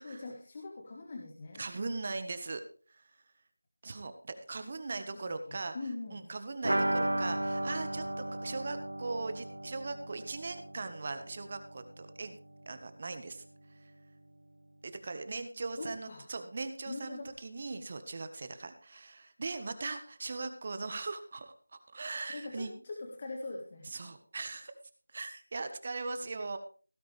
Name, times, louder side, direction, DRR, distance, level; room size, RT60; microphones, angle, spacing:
voice 1, 0.0-1.6 5.1-6.2 15.7-16.3 16.9-17.3 22.3-24.1, left 3 dB, 30° left, 1 dB, 1.7 m, -43 dB
voice 2, 1.6-2.6 2.9-3.1 3.8-5.7 6.1-12.4 12.7-13.4 13.8-13.9 14.8-22.7 23.9-24.7 25.1-26.6, right 3 dB, 35° right, 9 dB, 1.4 m, -39 dB
sound 1, 6.6-12.2 12.5-12.6 12.9-13.0, right 1 dB, 75° right, 0.6 m, -35 dB
17.0 x 9.5 x 3.4 m, 0.40 s
figure-of-eight pair, 170°, 0 cm